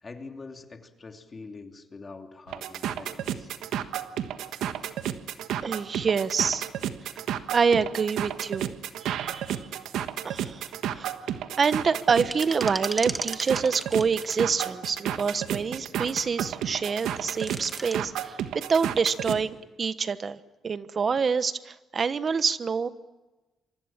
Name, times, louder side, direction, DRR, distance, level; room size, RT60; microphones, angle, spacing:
voice 1, 0.0-3.5, left 3 dB, 30° left, 4 dB, 3.0 m, -44 dB
sound 1, 2.5-19.4, right 10 dB, 85° right, 1.4 m, -32 dB
voice 2, 5.6-6.7 7.5-8.7 9.0-9.6 10.2-11.1 11.6-22.9, right 5 dB, 45° right, 13 dB, 1.2 m, -26 dB
sound 2, 12.2-15.0 17.1-18.0, right 2 dB, 15° right, 1.6 m, -36 dB
27.5 x 24.5 x 7.5 m, 1.1 s
cardioid pair, 90°, 0 cm